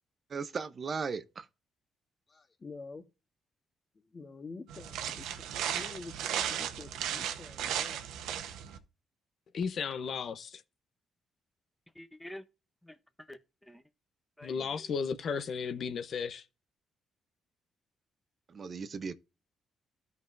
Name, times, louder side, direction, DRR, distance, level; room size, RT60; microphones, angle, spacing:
voice 1, 0.3-1.5 18.5-19.1, right 5 dB, 45° right, 0.7 m, -37 dB
voice 2, 2.3-3.0 3.9-8.1 8.4-8.6, left 4 dB, 35° left, 1.4 m, -48 dB
sound 1, 4.7-8.8, right 10 dB, 90° right, 0.9 m, -35 dB
voice 3, 9.5-10.6 14.4-16.4, left 6 dB, 55° left, 0.7 m, -34 dB
voice 4, 11.9-12.5 12.8-13.8 14.4-14.9, left 1 dB, 5° left, 0.8 m, -49 dB
13.0 x 5.4 x 2.5 m
cardioid pair, 90°, 0 cm